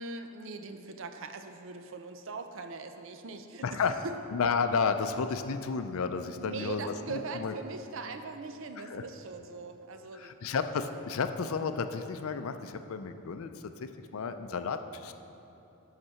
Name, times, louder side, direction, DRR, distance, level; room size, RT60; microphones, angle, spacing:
voice 1, 0.0-3.8 4.0-4.1 6.4-10.3, right 3 dB, 65° right, 7 dB, 0.5 m, -41 dB
voice 2, 3.6-4.0 4.3-7.5 8.9-9.0 10.1-13.5 13.8-15.1, left 5 dB, 75° left, 9 dB, 0.4 m, -32 dB
8.1 x 5.9 x 5.7 m, 3.0 s
head